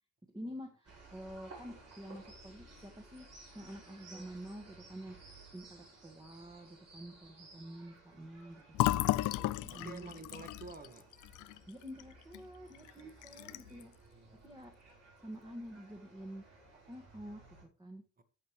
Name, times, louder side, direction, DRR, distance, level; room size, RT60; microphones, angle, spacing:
voice 1, 0.3-9.1 9.7-10.1 11.7-13.9 14.4-14.7 15.2-16.4 16.9-18.0, equal, 15° right, 1.8 m, -48 dB
sound 1, 0.8-17.6, right 2 dB, 55° right, 5.2 m, -57 dB
Fill (with liquid), 8.7-12.4 12.7-12.9 13.2-13.8, left 16 dB, 85° left, 0.5 m, -34 dB
voice 2, 9.2-11.1 13.8-14.6 18.2-18.3, right 3 dB, 30° right, 1.7 m, -51 dB
13.0 x 7.8 x 3.2 m
cardioid pair, 90°, 30 cm